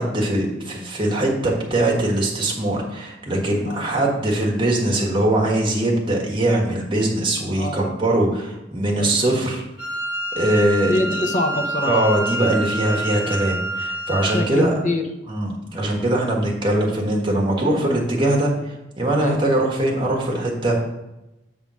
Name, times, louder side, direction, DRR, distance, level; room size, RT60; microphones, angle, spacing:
voice 1, 0.0-9.6 10.4-11.0 11.8-14.7 15.3-20.7, right 1 dB, 30° right, -2 dB, 1.5 m, -21 dB
voice 2, 7.5-8.0 8.9-9.2 10.9-12.0 14.3-15.1 19.1-19.4, left 1 dB, 45° left, 6 dB, 0.8 m, -25 dB
Wind instrument woodwind instrument, 9.8-14.6, right 1 dB, 80° left, 1.8 m, -28 dB
7.0 x 3.6 x 6.2 m, 0.94 s
head